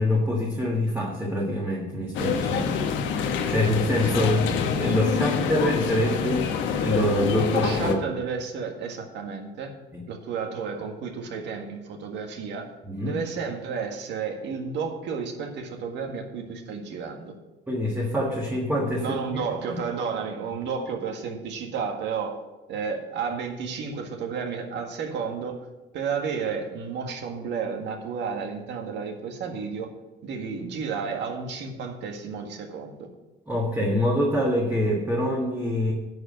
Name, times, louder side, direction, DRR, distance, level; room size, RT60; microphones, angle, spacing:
voice 1, 0.0-2.8 3.1-6.5 6.8-8.0 9.9-10.0 12.8-13.2 17.7-19.1 19.3-19.4 19.7-19.8 33.5-35.9, left 1 dB, 10° right, -2 dB, 1.5 m, -25 dB
sound 1, 2.1-7.9, left 7 dB, 75° left, 1.2 m, -26 dB
voice 2, 7.5-9.7 10.1-12.7 13.0-17.3 19.0-22.4 22.7-25.6 25.9-29.9 30.2-33.1, right 6 dB, 65° right, 3 dB, 1.8 m, -32 dB
10.5 x 4.8 x 7.7 m, 1.1 s
cardioid pair, 115°, 19 cm